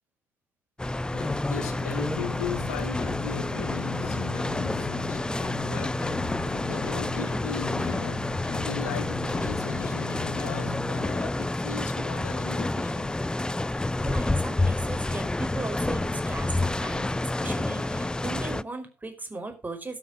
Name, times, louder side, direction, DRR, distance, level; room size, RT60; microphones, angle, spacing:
sound 1, 0.8-18.6, left 2 dB, 10° left, 0.6 m, -29 dB
sound 2, 1.1-11.3, left 8 dB, 50° left, 2.4 m, -39 dB
voice 1, 1.5-6.2 6.6-13.1, left 8 dB, 80° left, 1.7 m, -39 dB
voice 2, 14.0-20.0, right 3 dB, 20° right, 5.1 m, -37 dB
12.5 x 8.2 x 6.8 m
hypercardioid pair, 55°, 8 cm